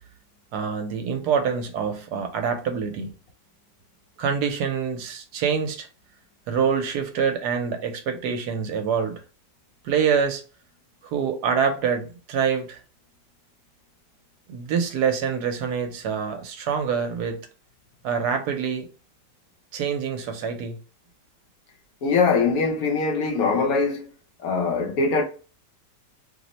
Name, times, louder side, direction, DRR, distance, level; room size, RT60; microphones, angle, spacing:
voice 1, 0.5-3.1 4.2-5.9 6.5-9.2 9.8-10.4 11.0-12.8 14.5-17.4 18.0-18.9 19.7-20.8, right 6 dB, 75° right, 1.1 m, -25 dB
voice 2, 22.0-24.1 24.4-25.2, left 4 dB, 65° left, 1.0 m, -22 dB
2.9 x 2.0 x 3.9 m
omnidirectional pair, 1.8 m